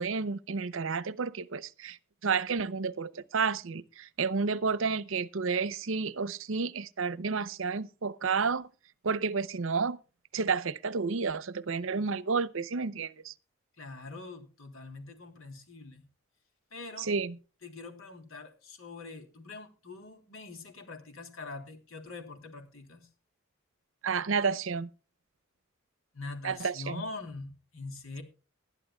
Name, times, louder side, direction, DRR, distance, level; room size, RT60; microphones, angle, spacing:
voice 1, 0.0-8.7 9.0-10.0 10.3-13.3 17.0-17.4 24.0-24.9 26.4-27.0, right 5 dB, 70° right, 0.7 m, -31 dB
voice 2, 13.8-16.0 16.7-17.1 17.6-23.1 26.1-28.2, left 3 dB, 80° left, 3.3 m, -43 dB
20.5 x 12.0 x 2.3 m
head